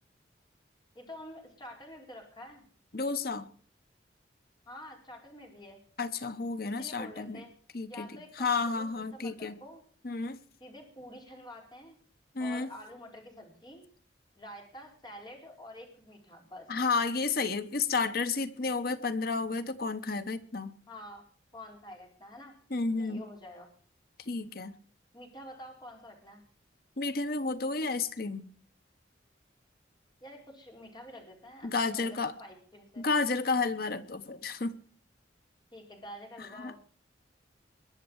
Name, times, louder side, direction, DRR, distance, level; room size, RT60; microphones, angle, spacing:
voice 1, 0.9-2.6 4.7-5.8 6.6-7.5 7.9-9.8 10.6-12.0 12.4-13.8 14.4-16.7 20.9-21.2 21.5-22.6 23.0-23.7 25.1-26.4 30.2-33.1 35.7-36.8, left 1 dB, 25° left, 1 dB, 4.5 m, -48 dB
voice 2, 2.9-3.5 6.0-7.4 7.7-8.1 8.4-9.5 10.0-10.4 12.3-12.7 16.7-20.7 22.7-23.2 24.2-24.7 27.0-28.4 31.6-32.3 33.0-34.8 36.4-36.7, left 4 dB, 50° left, 12 dB, 1.0 m, -31 dB
21.5 x 7.5 x 7.1 m, 0.44 s
head